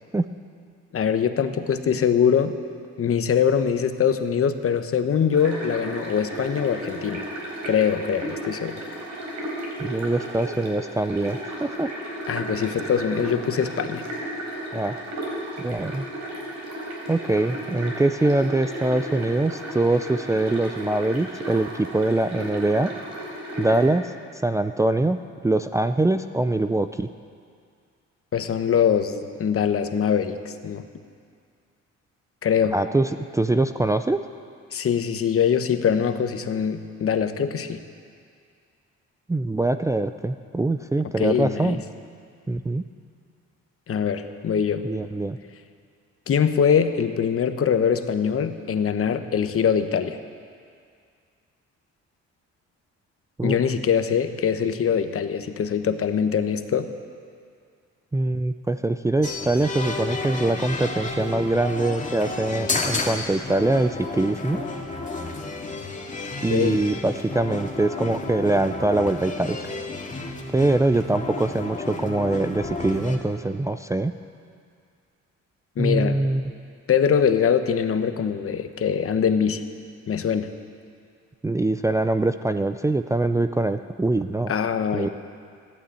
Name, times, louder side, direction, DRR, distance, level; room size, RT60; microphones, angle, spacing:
voice 1, 0.9-2.5 3.0-7.3 7.6-8.8 12.3-14.0 28.3-30.9 32.4-32.7 34.7-37.8 41.2-41.8 43.9-44.8 46.3-50.2 53.4-56.9 66.5-66.8 75.8-76.2 76.9-79.6 80.1-80.5 84.5-85.1, left 7 dB, 50° left, 9 dB, 1.0 m, -23 dB
sound 1, 5.3-23.9, right 1 dB, 65° right, 4.4 m, -34 dB
voice 2, 9.8-11.9 14.7-15.0 15.6-16.1 17.1-22.9 23.6-24.1 24.4-27.1 32.7-34.2 39.3-41.8 42.5-42.8 44.8-45.4 53.4-53.6 58.1-64.7 66.4-69.7 70.5-74.1 75.8-76.4 81.4-84.5 84.9-85.1, right 2 dB, 10° right, 7 dB, 0.4 m, -23 dB
sound 2, 59.2-73.2, left 3 dB, 25° left, 2.1 m, -32 dB
14.5 x 11.5 x 8.4 m, 2.2 s
cardioid pair, 90°, 30 cm